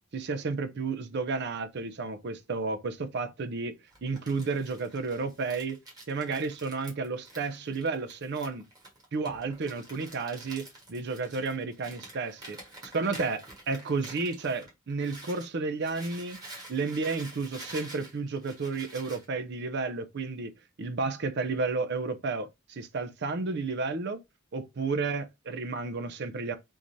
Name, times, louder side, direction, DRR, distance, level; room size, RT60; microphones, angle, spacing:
voice 1, 0.1-3.7 4.0-5.8 6.1-8.6 9.1-16.4 16.7-20.5 20.8-24.2 24.5-26.6, right 4 dB, 55° right, 0.5 m, -32 dB
Crumpling crinkling, 3.9-15.5 15.8-19.2, right 2 dB, 20° right, 1.5 m, -48 dB
3.7 x 2.6 x 3.0 m
head